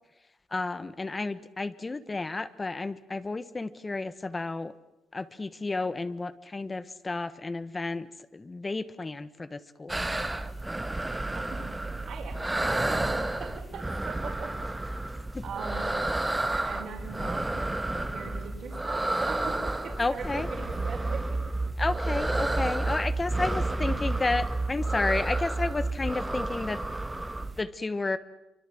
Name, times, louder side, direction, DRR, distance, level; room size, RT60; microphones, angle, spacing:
voice 1, 0.5-4.7 5.1-10.0 15.3-15.4 20.0-20.5 21.8-26.8 27.6-28.2, left 3 dB, 25° left, 14 dB, 1.3 m, -32 dB
sound 1, 9.9-27.6, right 2 dB, 15° right, 1.5 m, -32 dB
voice 2, 11.3-14.6 15.4-15.9 16.5-21.4, right 5 dB, 65° right, 1 dB, 5.5 m, -41 dB
sound 2, 20.7-26.1, right 3 dB, 40° right, 1.8 m, -31 dB
26.0 x 24.5 x 7.7 m, 0.94 s
cardioid pair, 90°, 0 cm